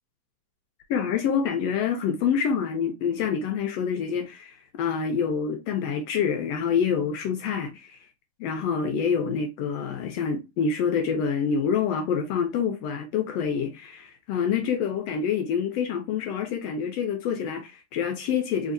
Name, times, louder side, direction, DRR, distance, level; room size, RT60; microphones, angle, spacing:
voice 1, 0.9-8.0 8.4-18.7, left 6 dB, 70° left, 1.7 m, -27 dB
4.3 x 3.7 x 2.6 m
omnidirectional pair, 3.3 m